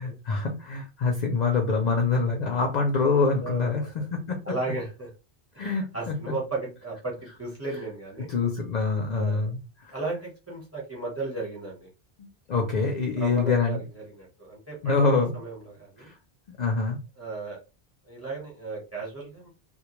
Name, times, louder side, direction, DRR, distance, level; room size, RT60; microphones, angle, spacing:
voice 1, 0.0-3.8 4.1-4.4 5.6-6.1 8.3-9.9 12.2-13.8 14.8-15.4 16.0-16.1 16.5-17.0, left 4 dB, 55° left, 2 dB, 0.5 m, -25 dB
voice 2, 3.4-4.1 4.4-5.1 5.9-8.3 9.1-9.4 9.9-11.9 13.2-16.1 17.2-17.6 18.1-19.5, right 3 dB, 15° right, -2 dB, 0.9 m, -35 dB
2.2 x 2.2 x 2.9 m, 0.29 s
omnidirectional pair, 1.1 m